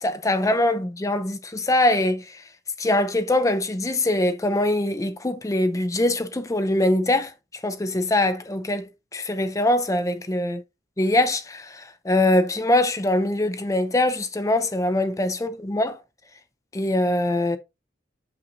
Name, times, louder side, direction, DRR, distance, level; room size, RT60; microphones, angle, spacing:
voice 1, 0.0-2.4 2.8-7.3 7.6-10.6 11.0-16.0 16.7-17.6, left 1 dB, 20° left, 0.5 m, -23 dB
6.5 x 5.7 x 2.6 m
head